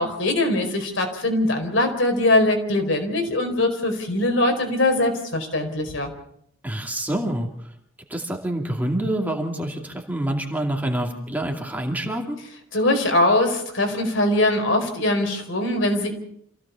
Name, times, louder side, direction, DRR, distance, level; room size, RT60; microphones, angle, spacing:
voice 1, 0.0-6.1 12.7-16.2, left 1 dB, 70° left, 4 dB, 4.7 m, -22 dB
voice 2, 6.6-7.5 8.1-12.4, right 1 dB, 10° right, 2 dB, 2.5 m, -26 dB
27.0 x 16.0 x 7.1 m, 0.71 s
head